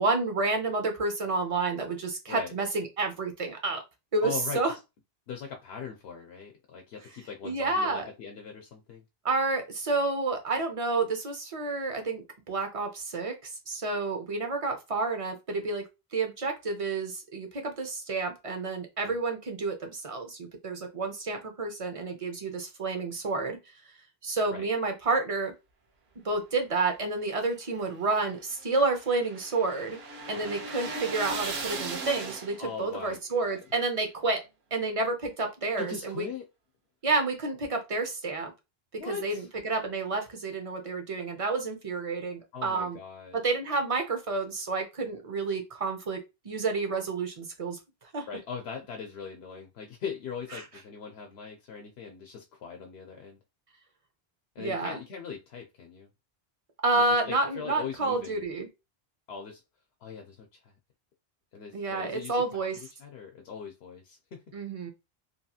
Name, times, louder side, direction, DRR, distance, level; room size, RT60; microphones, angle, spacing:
voice 1, 0.0-3.8 4.1-4.7 7.4-8.0 9.2-15.8 16.1-23.6 24.2-25.5 26.2-30.0 30.3-34.4 34.7-36.3 37.0-38.5 38.9-43.0 43.3-46.2 46.4-47.8 48.1-48.3 50.5-50.6 54.6-55.0 56.8-58.7 61.7-62.8 64.5-64.9, right 3 dB, 40° right, 0.7 m, -30 dB
voice 2, 4.2-4.8 5.3-9.0 19.0-19.2 24.5-24.7 30.3-30.6 32.6-33.7 35.8-36.5 39.0-39.5 42.5-43.4 48.3-53.4 54.6-56.1 57.2-58.4 59.3-59.6 60.0-60.7 61.5-62.4 62.7-64.4, left 6 dB, 85° left, 0.8 m, -40 dB
sound 1, 27.4-32.8, right 3 dB, 85° right, 1.0 m, -38 dB
2.9 x 2.7 x 2.3 m
omnidirectional pair, 1.0 m